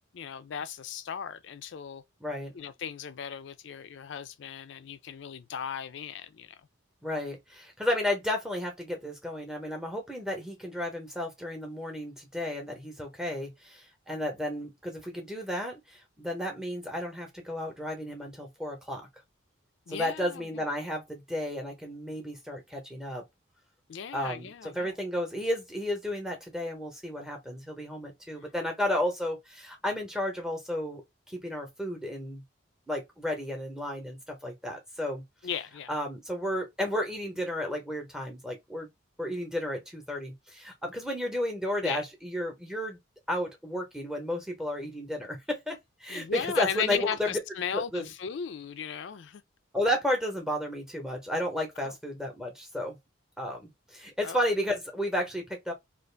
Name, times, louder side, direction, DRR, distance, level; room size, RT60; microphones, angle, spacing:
voice 1, 0.1-2.0 2.5-6.6 19.9-20.6 23.9-25.0 35.4-35.9 41.8-42.0 46.1-49.4 51.8-51.9 54.2-54.4, left 7 dB, 60° left, 0.3 m, -36 dB
voice 2, 2.2-2.5 7.0-19.0 19.9-23.2 24.1-31.0 31.3-32.4 32.9-35.2 35.9-38.9 39.2-43.0 43.3-47.4 47.7-48.1 49.7-53.0 53.4-55.7, left 1 dB, 5° right, 0.8 m, -33 dB
2.5 x 2.4 x 3.2 m
head